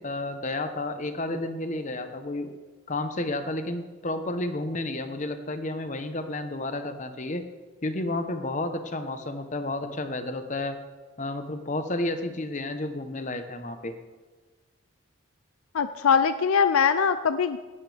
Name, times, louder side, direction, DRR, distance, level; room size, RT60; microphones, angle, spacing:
voice 1, 0.0-2.5 2.9-7.4 7.8-10.8 11.2-13.9, left 2 dB, 35° left, 8 dB, 0.9 m, -31 dB
voice 2, 15.7-17.6, left 6 dB, 90° left, 12 dB, 0.5 m, -22 dB
17.5 x 12.5 x 3.5 m, 1.3 s
head